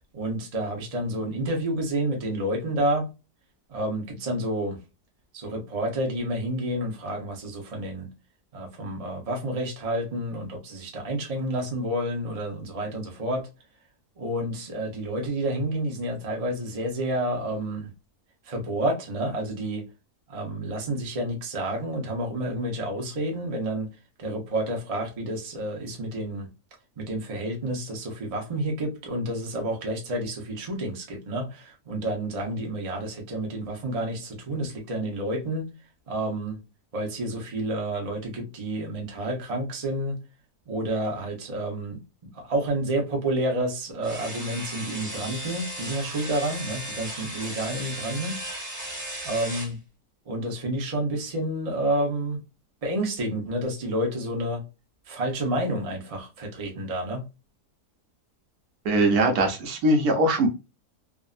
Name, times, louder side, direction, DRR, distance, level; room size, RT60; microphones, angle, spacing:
voice 1, 0.1-3.1 3.7-4.8 5.3-8.1 8.5-13.5 14.2-17.9 18.4-19.8 20.3-23.9 24.2-26.5 27.0-35.7 36.1-36.6 36.9-40.2 40.7-48.4 49.2-49.8 50.3-52.4 52.8-54.6 55.1-57.2, right 1 dB, 35° right, 0.6 m, -29 dB
sound 1, 44.0-49.7, right 1 dB, 20° right, 1.0 m, -36 dB
voice 2, 58.8-60.5, right 1 dB, 70° right, 1.2 m, -21 dB
3.5 x 2.0 x 2.4 m
omnidirectional pair, 1.7 m